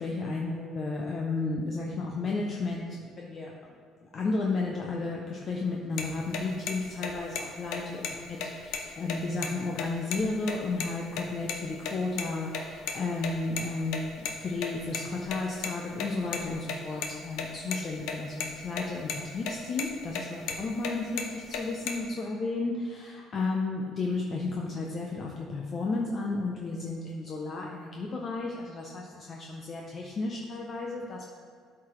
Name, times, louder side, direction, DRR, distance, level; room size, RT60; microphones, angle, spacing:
voice 1, 0.0-3.5 4.0-31.3, left 3 dB, 30° left, -1 dB, 0.6 m, -33 dB
sound 1, 6.0-6.1 6.3-6.4 6.7-6.8 7.0-7.4 7.7-7.8 8.0-8.1 8.4-9.5 9.8-9.9 10.1-10.2 10.5-10.9 11.2-11.6 11.8-12.9 13.2-15.7 16.0-17.8 18.1-18.2 18.4-18.8 19.1-19.5 19.8-20.9 21.2-21.9, left 6 dB, 70° left, 0.9 m, -33 dB
12.0 x 4.8 x 3.1 m, 2.2 s
cardioid pair, 165°, 0 cm